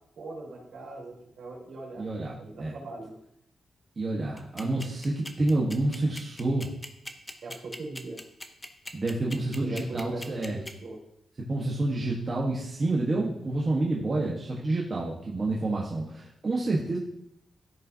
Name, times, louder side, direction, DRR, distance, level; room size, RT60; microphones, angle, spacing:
voice 1, 0.2-2.1 2.3-3.1 7.4-8.2 9.6-11.0, right 2 dB, 70° right, -3 dB, 3.5 m, -40 dB
voice 2, 2.0-2.7 4.0-6.7 8.9-10.6 11.5-17.0, right 2 dB, 30° right, -4 dB, 1.2 m, -28 dB
sound 1, 4.4-10.7, left 1 dB, 10° left, 0.6 m, -40 dB
14.0 x 5.4 x 2.7 m, 0.76 s
wide cardioid pair, 175°, 0 cm